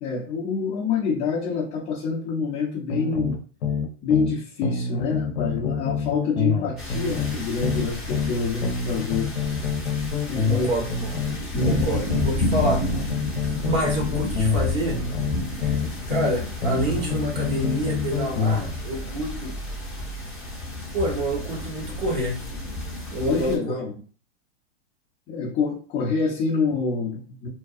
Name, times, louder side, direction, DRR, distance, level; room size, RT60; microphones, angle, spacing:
voice 1, 0.0-3.4 4.0-9.5 10.3-10.7 11.5-12.0 23.2-23.9 25.3-27.5, left 5 dB, 25° left, -6 dB, 0.7 m, -27 dB
sound 1, 2.9-4.4 4.6-8.3 8.6-12.3 12.6-16.3 16.6-18.7, left 5 dB, 65° left, 0.7 m, -26 dB
sound 2, 6.8-23.6, left 1 dB, ahead, 1.0 m, -31 dB
voice 2, 10.5-11.1 11.7-13.1 13.5-15.0 15.5-15.8 16.1-19.5 20.9-22.4 23.1-23.8, right 1 dB, 30° right, -1 dB, 1.2 m, -28 dB
2.6 x 2.2 x 2.4 m, 0.39 s
hypercardioid pair, 125°, 35 cm